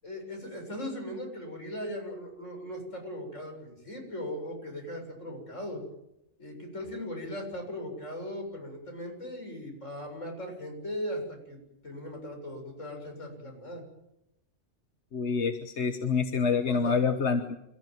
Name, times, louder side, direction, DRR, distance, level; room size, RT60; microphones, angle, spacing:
voice 1, 0.0-5.8 6.4-11.6 11.8-13.8 16.7-17.0, left 1 dB, 75° left, 2 dB, 7.8 m, -38 dB
voice 2, 15.1-17.6, left 5 dB, 60° left, 7 dB, 1.4 m, -27 dB
28.0 x 15.0 x 9.3 m, 0.86 s
omnidirectional pair, 1.3 m